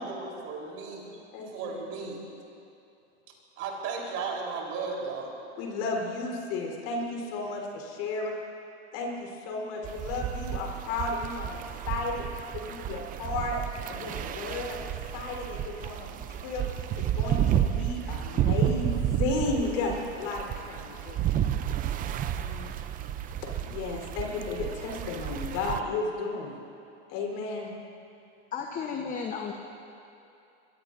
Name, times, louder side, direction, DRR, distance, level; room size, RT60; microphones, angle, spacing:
voice 1, 0.0-1.2 1.5-2.2 3.6-5.3, right 4 dB, 40° right, -1 dB, 4.1 m, -35 dB
voice 2, 1.3-1.7 2.0-2.1 5.6-8.3 8.9-11.6 11.9-13.6 13.9-21.4 23.6-26.5 27.1-27.7, left 3 dB, 55° left, 0 dB, 4.2 m, -33 dB
sound 1, 9.8-25.8, right 10 dB, 25° right, 0.6 m, -31 dB
voice 3, 22.4-22.8 28.5-29.5, left 6 dB, 25° left, 2 dB, 1.1 m, -35 dB
24.5 x 22.0 x 2.7 m, 2.6 s
hypercardioid pair, 125°, 35 cm